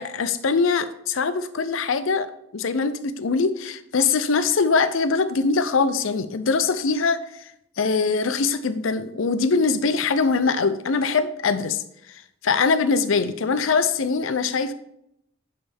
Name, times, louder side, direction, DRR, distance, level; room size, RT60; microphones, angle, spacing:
voice 1, 0.0-2.3 2.5-7.5 7.8-14.7, left 4 dB, 75° left, 12 dB, 0.6 m, -22 dB
10.5 x 5.5 x 3.5 m, 0.78 s
head